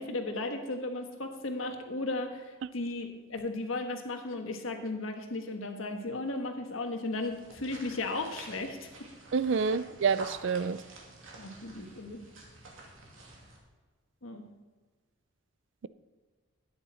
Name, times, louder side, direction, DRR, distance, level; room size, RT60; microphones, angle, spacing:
voice 1, 0.0-8.9 11.4-12.2 14.2-14.5, left 2 dB, 85° left, 1.4 m, -35 dB
sound 1, 7.3-13.6, right 2 dB, 85° right, 2.5 m, -49 dB
voice 2, 9.3-10.8, right 5 dB, 65° right, 0.4 m, -28 dB
12.5 x 9.6 x 4.3 m
head